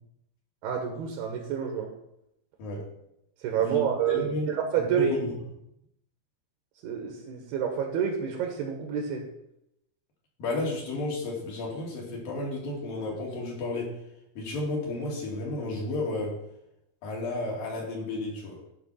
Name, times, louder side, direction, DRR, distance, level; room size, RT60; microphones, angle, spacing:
voice 1, 0.6-1.9 3.4-5.1 6.8-9.2, right 8 dB, 75° right, 2 dB, 2.9 m, -28 dB
voice 2, 4.1-4.5 4.8-5.3 10.4-13.9 14.4-16.4 17.0-18.6, left 2 dB, 60° left, -3 dB, 3.6 m, -32 dB
11.5 x 4.0 x 5.5 m, 0.81 s
omnidirectional pair, 4.6 m